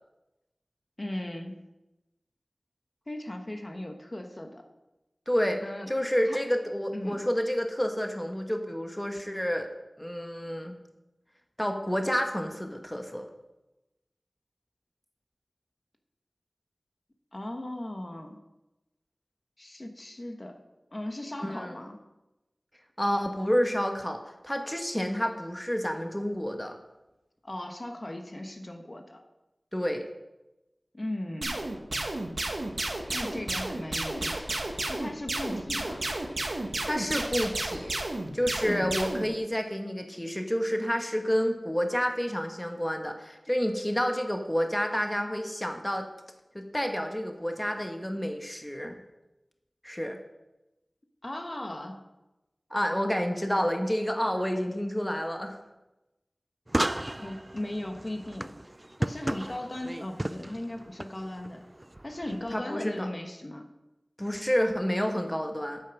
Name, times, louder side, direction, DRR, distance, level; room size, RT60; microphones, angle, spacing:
voice 1, 1.0-1.5 3.1-4.6 5.6-5.9 6.2-6.4 6.9-7.2 17.3-18.4 19.6-20.6 20.9-22.0 27.4-29.2 30.9-31.6 33.1-34.6 34.9-36.0 38.6-38.9 51.2-52.0 57.2-58.5 59.0-61.6 62.0-63.7, left 1 dB, 40° left, 4 dB, 1.2 m, -37 dB
voice 2, 5.3-5.6 5.9-9.7 10.0-10.8 11.6-13.2 21.4-21.8 23.0-26.8 29.7-30.1 36.9-37.9 38.3-46.1 46.5-49.0 49.8-50.2 52.7-55.6 62.3-63.1 64.2-65.8, equal, 10° left, 4 dB, 1.2 m, -29 dB
sound 1, 31.4-39.3, right 2 dB, 70° right, 1.4 m, -32 dB
sound 2, 56.7-62.6, right 1 dB, 25° right, 0.3 m, -35 dB
8.7 x 8.6 x 6.0 m, 1.0 s
wide cardioid pair, 45°, 0 cm